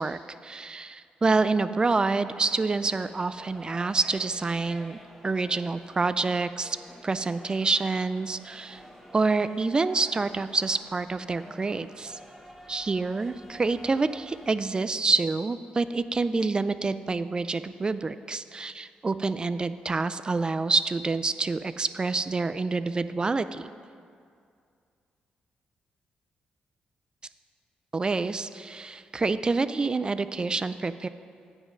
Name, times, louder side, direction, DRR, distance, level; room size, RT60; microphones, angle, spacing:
voice 1, 0.0-5.0 5.2-6.8 7.0-8.8 9.1-12.2 12.7-23.7 27.9-31.1, right 3 dB, 30° right, 13 dB, 0.3 m, -27 dB
sound 1, 2.4-14.5, equal, ahead, 1.3 m, -50 dB
9.1 x 6.2 x 5.3 m, 2.3 s
cardioid pair, 80°, 3 cm